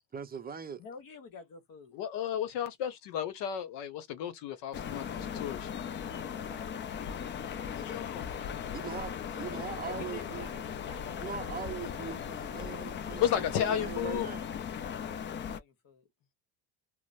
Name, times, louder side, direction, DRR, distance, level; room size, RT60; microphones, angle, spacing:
voice 1, 0.1-0.8 8.7-10.5 11.2-14.4, right 7 dB, 20° right, 0.5 m, -41 dB
voice 2, 0.8-2.0 6.1-11.5 14.7-16.1, left 4 dB, 50° left, 1.1 m, -51 dB
voice 3, 1.9-5.7 7.8-8.3 13.2-14.3, left 9 dB, 70° left, 0.9 m, -33 dB
sound 1, 4.7-15.6, left 8 dB, 30° left, 0.3 m, -38 dB
2.9 x 2.1 x 2.5 m
supercardioid pair, 95°, 42 cm